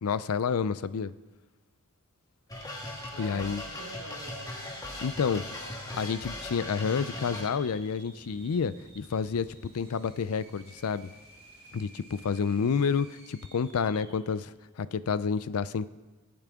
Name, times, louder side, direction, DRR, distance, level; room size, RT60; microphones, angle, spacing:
voice 1, 0.0-1.1 3.2-3.6 5.0-5.4 6.0-11.1 11.7-15.9, left 6 dB, 75° left, 16 dB, 0.4 m, -29 dB
sound 1, 2.5-7.5, left 1 dB, 15° left, 1.5 m, -39 dB
voice 2, 2.6-5.1 5.3-6.0, right 2 dB, 90° right, 2 dB, 1.8 m, -47 dB
sound 2, 5.7-14.3, right 2 dB, 45° right, 5.0 m, -55 dB
Thunder / Rain, 6.9-12.6, equal, 25° right, 5.2 m, -58 dB
21.5 x 8.7 x 3.6 m, 1.2 s
head